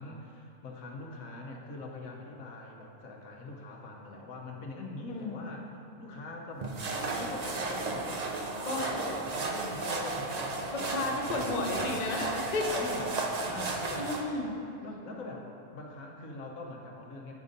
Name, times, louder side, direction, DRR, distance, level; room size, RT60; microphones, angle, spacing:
voice 1, 0.0-11.6 12.7-13.1 13.4-14.1 14.8-17.3, left 2 dB, 70° left, 0 dB, 1.3 m, -43 dB
voice 2, 5.1-5.5 8.7-8.9 10.7-12.7 14.0-14.6, left 2 dB, 35° left, -1 dB, 0.8 m, -33 dB
sound 1, 6.6-14.2, right 3 dB, 50° right, 0.5 m, -34 dB
9.1 x 4.0 x 5.1 m, 2.9 s
omnidirectional pair, 1.5 m